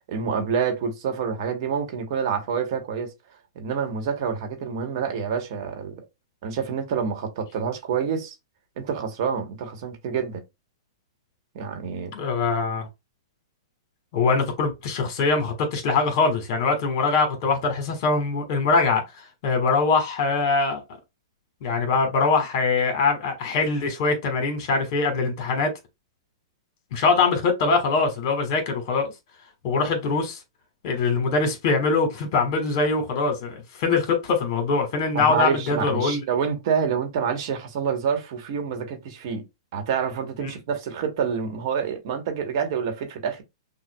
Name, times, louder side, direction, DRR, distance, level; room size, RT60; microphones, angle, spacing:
voice 1, 0.1-3.1 3.5-5.9 6.4-8.4 8.8-10.4 11.5-12.1 35.1-39.4 39.7-43.4, right 6 dB, 55° right, 1.2 m, -27 dB
voice 2, 12.1-12.9 14.1-20.8 21.6-25.7 26.9-29.1 29.6-30.4 30.8-36.2 40.4-40.5, left 4 dB, 50° left, 1.5 m, -23 dB
5.9 x 2.3 x 2.3 m
hypercardioid pair, 130°, 3 cm